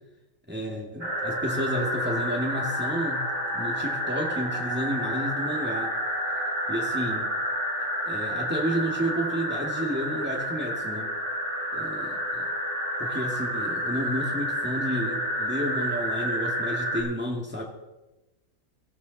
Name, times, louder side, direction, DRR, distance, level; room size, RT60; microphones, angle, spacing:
voice 1, 0.5-3.3 3.5-5.9 6.7-7.3 8.1-11.1 11.7-12.4 13.0-17.6, equal, 10° right, 0 dB, 2.0 m, -31 dB
sound 1, 1.0-17.0, equal, 70° right, 5.5 m, -29 dB
17.5 x 13.0 x 4.1 m, 1.0 s
omnidirectional pair, 1.4 m